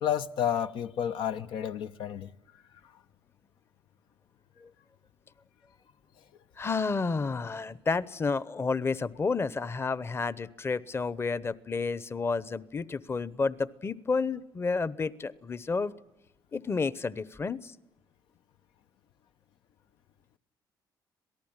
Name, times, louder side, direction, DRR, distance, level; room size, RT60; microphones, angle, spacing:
voice 1, 0.0-2.3, left 9 dB, 80° left, 0.8 m, -30 dB
voice 2, 6.6-15.9 16.5-17.7, left 4 dB, 30° left, 0.9 m, -31 dB
26.5 x 18.5 x 8.9 m
cardioid pair, 95°, 8 cm